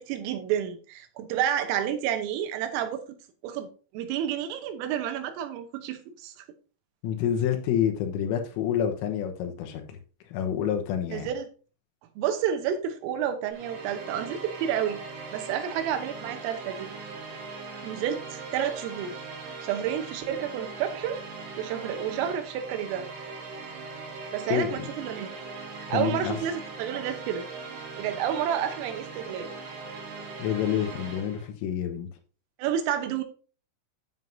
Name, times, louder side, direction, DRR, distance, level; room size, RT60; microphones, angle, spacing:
voice 1, 0.0-3.2 3.4-3.7 3.9-6.5 11.1-11.5 12.2-15.0 15.3-16.9 17.8-19.2 19.6-21.2 21.6-23.1 24.3-25.3 25.9-27.5 28.0-29.5 32.6-33.2, right 9 dB, 85° right, 8 dB, 3.5 m, -30 dB
voice 2, 7.0-10.0 10.3-11.3 24.5-24.9 25.9-26.4 30.4-32.1, left 9 dB, 80° left, 5 dB, 3.6 m, -28 dB
sound 1, 13.5-31.5, right 4 dB, 65° right, 4.0 m, -40 dB
9.3 x 7.3 x 2.7 m, 0.37 s
omnidirectional pair, 5.8 m